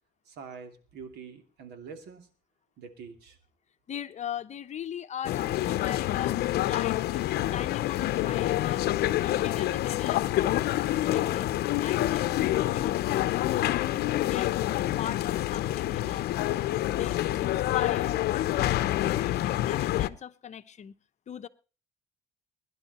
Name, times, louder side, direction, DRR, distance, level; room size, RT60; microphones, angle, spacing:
voice 1, 0.3-2.3 2.8-3.4, right 5 dB, 75° right, 2.9 m, -45 dB
voice 2, 3.9-8.9 9.2-10.7 11.0-11.5 11.8-13.8 14.1-14.5 15.0-16.5 16.9-20.9 21.3-21.5, left 9 dB, 45° left, 0.9 m, -39 dB
sound 1, 5.2-20.1, left 14 dB, 70° left, 0.7 m, -27 dB
21.5 x 11.0 x 4.3 m
cardioid pair, 110°, 17 cm